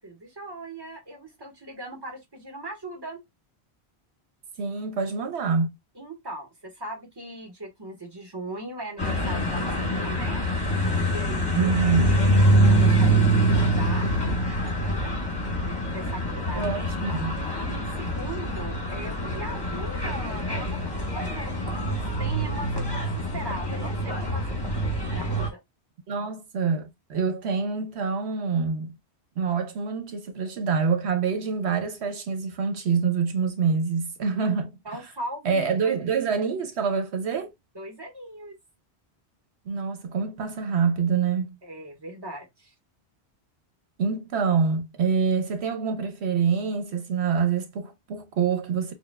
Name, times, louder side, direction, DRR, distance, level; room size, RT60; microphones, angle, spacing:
voice 1, 0.0-3.2 5.9-10.4 11.0-14.2 14.5-15.1 15.6-16.8 17.6-24.6 25.1-25.6 34.8-35.7 37.7-38.6 41.6-42.7, right 1 dB, 20° right, 1.3 m, -39 dB
voice 2, 4.6-5.7 11.6-12.2 16.5-17.3 26.1-28.9 29.4-35.0 35.4-37.5 39.7-41.6 44.0-48.9, right 6 dB, 80° right, 1.0 m, -26 dB
sound 1, 9.0-25.5, right 1 dB, 20° left, 1.3 m, -25 dB
6.7 x 2.3 x 2.2 m
omnidirectional pair, 1.1 m